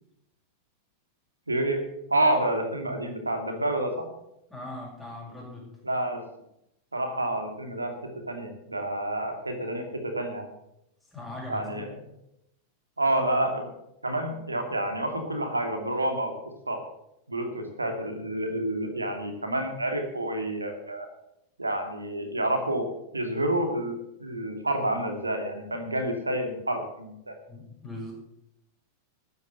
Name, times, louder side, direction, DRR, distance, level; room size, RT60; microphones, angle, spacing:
voice 1, 1.5-4.1 5.8-6.2 6.9-10.5 11.5-11.9 13.0-13.7 14.0-16.3 16.7-16.8 17.3-21.1 21.6-27.3, right 1 dB, 80° right, 6 dB, 2.4 m, -29 dB
voice 2, 4.5-5.8 11.1-11.8 27.5-28.1, left 1 dB, 5° left, -9 dB, 6.5 m, -40 dB
14.0 x 9.5 x 6.7 m, 0.82 s
figure-of-eight pair, 90°, 0 cm